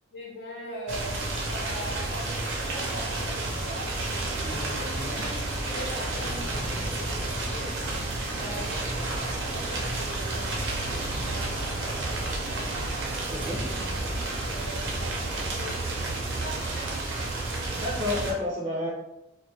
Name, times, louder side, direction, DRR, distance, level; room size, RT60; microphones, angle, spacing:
voice 1, 0.1-4.6 5.1-13.0 13.6-17.0, equal, 70° left, -4 dB, 0.7 m, -42 dB
sound 1, 0.9-18.3, right 2 dB, 85° right, 0.6 m, -31 dB
voice 2, 4.4-5.2 8.5-8.6 13.3-13.7 17.5-18.9, left 2 dB, 25° right, -7 dB, 0.4 m, -32 dB
sound 2, 6.1-15.0, equal, 25° left, 0.7 m, -41 dB
2.2 x 2.1 x 2.7 m, 0.93 s
head